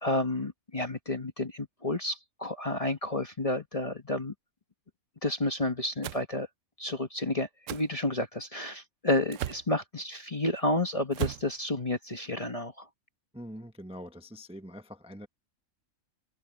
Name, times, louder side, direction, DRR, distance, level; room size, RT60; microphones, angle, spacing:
voice 1, 0.0-4.3 5.2-6.5 6.8-12.8, left 2 dB, 25° left, 1.1 m, -31 dB
sound 1, 6.0-6.2 7.7-7.9 9.3-9.7 11.1-11.5, right 12 dB, 70° right, 0.9 m, -34 dB
voice 2, 13.3-15.3, equal, 5° right, 1.0 m, -44 dB
open air
omnidirectional pair, 1.5 m